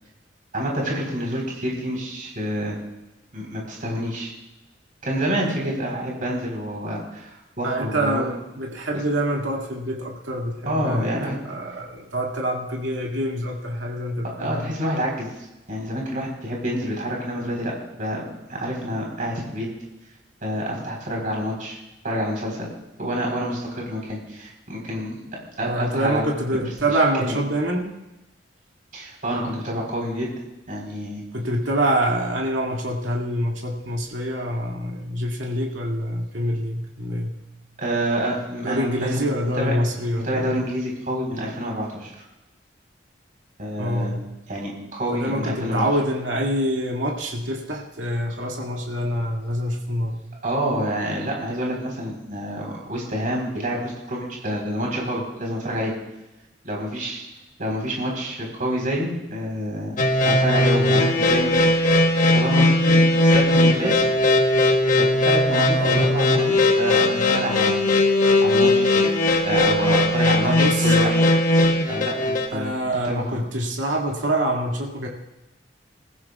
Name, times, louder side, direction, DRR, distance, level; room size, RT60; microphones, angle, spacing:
voice 1, 0.5-2.8 3.3-4.3 5.0-8.2 10.7-11.4 14.4-15.3 15.7-19.7 20.4-21.8 22.0-22.7 23.0-25.2 25.6-26.2 27.2-27.4 28.9-30.3 30.7-31.2 37.8-39.7 40.2-42.1 43.6-44.1 44.5-45.8 50.4-55.9 56.6-57.3 57.6-60.0 60.2-61.8 62.3-64.0 65.0-67.8 68.4-69.0 69.4-70.5 70.8-71.2 71.9-72.7 73.0-73.2, equal, 45° right, -2 dB, 4.1 m, -27 dB
voice 2, 7.6-14.8 25.6-28.0 31.3-37.4 38.6-40.7 43.8-44.3 45.1-50.2 65.7-66.2 70.4-71.0 72.5-75.1, right 1 dB, 90° right, -1 dB, 2.3 m, -26 dB
sound 1, 60.0-72.5, left 2 dB, 45° left, 1.3 m, -18 dB
21.5 x 15.0 x 2.4 m, 0.99 s
head